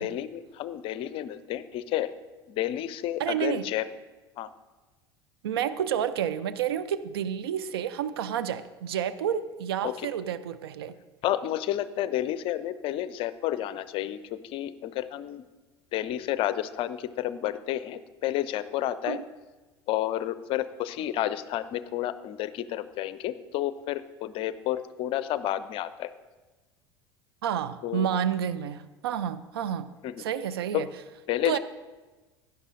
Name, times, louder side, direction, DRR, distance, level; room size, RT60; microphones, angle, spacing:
voice 1, 0.0-2.1 2.5-3.9 4.4-4.5 9.8-10.1 11.2-15.4 15.9-19.2 19.9-26.1 27.8-28.1 30.0-30.2 30.7-30.8 31.3-31.6, left 13 dB, 40° left, 15 dB, 0.5 m, -30 dB
voice 2, 3.2-3.7 5.4-11.0 19.1-19.2 27.4-29.9 30.2-30.9 31.4-31.6, right 9 dB, 65° right, 13 dB, 0.5 m, -30 dB
16.5 x 10.5 x 2.6 m, 1.2 s
figure-of-eight pair, 70°, 13 cm